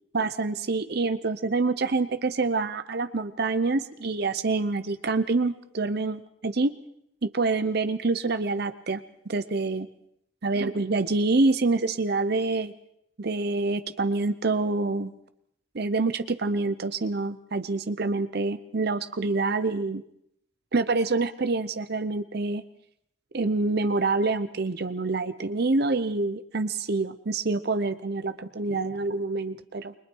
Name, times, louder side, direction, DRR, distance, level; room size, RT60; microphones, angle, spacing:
voice 1, 0.1-6.7 7.2-9.0 9.3-9.9 10.4-12.7 13.2-15.1 15.7-20.0 20.7-22.6 23.3-29.9, right 3 dB, 55° right, 12 dB, 0.8 m, -26 dB
29.0 x 22.5 x 4.6 m, 0.73 s
head